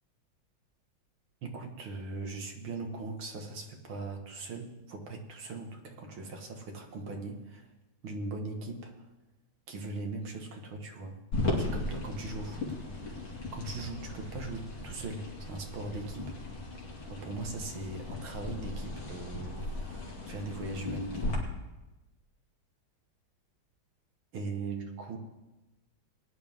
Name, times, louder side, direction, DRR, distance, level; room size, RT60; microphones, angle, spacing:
voice 1, 1.4-7.7 8.0-9.1 9.7-11.2 11.6-12.8 13.1-13.2 13.5-16.4 17.1-21.3 24.3-25.2, right 3 dB, 80° right, 3 dB, 2.4 m, -40 dB
sound 1, 11.3-21.4, left 2 dB, 75° left, 3.2 m, -37 dB
20.5 x 10.0 x 3.6 m, 1.1 s
omnidirectional pair, 2.2 m